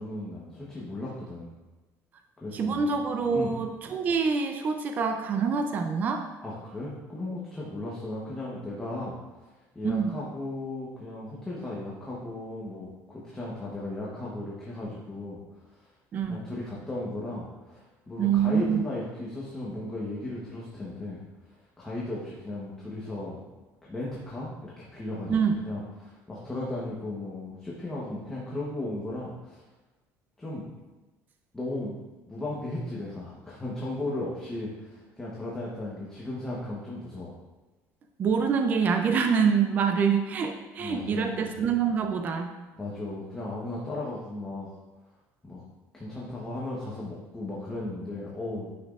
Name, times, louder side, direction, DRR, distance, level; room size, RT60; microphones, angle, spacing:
voice 1, 0.0-1.5 2.4-2.8 3.3-3.5 6.4-9.5 9.7-15.4 15.7-15.9 16.3-21.2 21.8-23.4 23.8-25.4 25.6-29.6 30.4-30.7 31.5-31.9 32.3-37.3 40.8-41.5 42.8-44.7 45.4-45.6 45.9-48.7, left 2 dB, 10° left, -6 dB, 1.1 m, -36 dB
voice 2, 2.5-6.2 9.8-10.1 16.1-16.4 18.2-18.8 25.3-25.6 38.2-42.5, right 6 dB, 30° right, 5 dB, 0.5 m, -25 dB
9.8 x 6.0 x 2.5 m, 1.1 s
cardioid pair, 165°, 6 cm